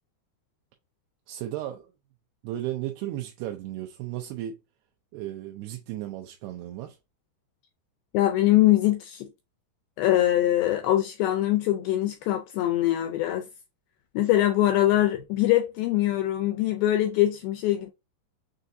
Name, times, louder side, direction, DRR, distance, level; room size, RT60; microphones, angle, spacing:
voice 1, 1.3-1.9 2.4-4.6 5.1-7.0, right 13 dB, 80° right, 2.6 m, -34 dB
voice 2, 8.1-9.3 10.0-13.5 14.1-17.9, left 14 dB, 85° left, 2.1 m, -23 dB
6.6 x 2.6 x 2.6 m
omnidirectional pair, 4.8 m